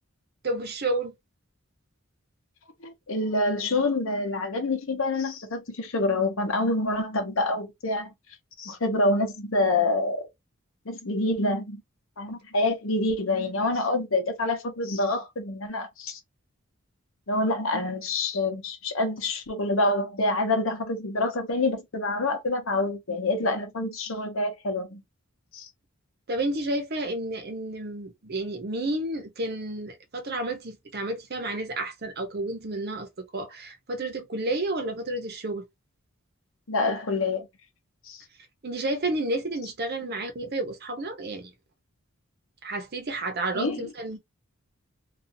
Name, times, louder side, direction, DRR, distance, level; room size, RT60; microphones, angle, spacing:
voice 1, 0.4-1.1 26.3-35.6 38.6-41.5 42.6-44.2, right 2 dB, 50° right, 0.7 m, -31 dB
voice 2, 2.8-8.1 8.6-10.2 10.9-11.8 12.2-16.2 17.3-25.0 25.5-25.7 36.7-37.5 38.1-38.2 43.5-43.8, left 2 dB, 70° left, 0.9 m, -27 dB
2.6 x 2.3 x 2.6 m
head